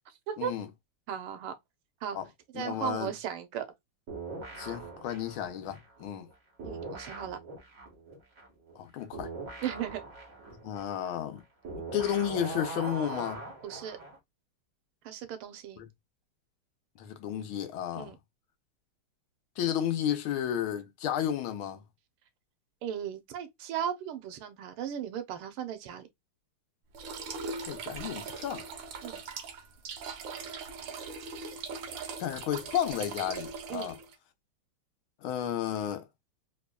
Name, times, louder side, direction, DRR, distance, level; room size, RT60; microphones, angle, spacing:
voice 1, 0.4-0.7 2.1-2.2 2.5-3.1 4.6-6.3 8.8-9.3 10.6-11.4 11.8-13.4 15.8-15.9 17.0-18.1 19.6-21.8 27.7-28.6 32.2-34.0 35.2-36.0, left 10 dB, 75° left, 1.5 m, -32 dB
voice 2, 1.1-1.5 2.0-2.2 2.5-3.7 6.6-7.4 9.6-10.0 13.6-14.0 15.0-15.8 17.9-18.2 22.8-26.1 29.0-29.2 33.7-33.9, right 9 dB, 85° right, 1.7 m, -36 dB
sound 1, 4.1-6.3 6.6-14.2, right 3 dB, 40° right, 1.9 m, -42 dB
sound 2, 26.9-34.1, right 5 dB, 65° right, 1.4 m, -40 dB
4.3 x 3.0 x 2.2 m
omnidirectional pair, 2.4 m